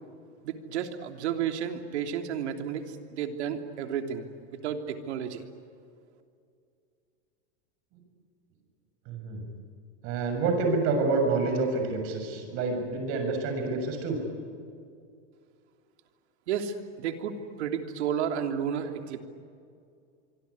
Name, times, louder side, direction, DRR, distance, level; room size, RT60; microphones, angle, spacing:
voice 1, 0.4-4.3 4.5-5.4 16.5-19.2, right 8 dB, 70° right, 5 dB, 3.2 m, -32 dB
voice 2, 9.1-9.4 10.0-14.2, right 3 dB, 40° right, 5 dB, 7.1 m, -28 dB
25.5 x 24.5 x 9.7 m, 2.4 s
supercardioid pair, 150°, 35 cm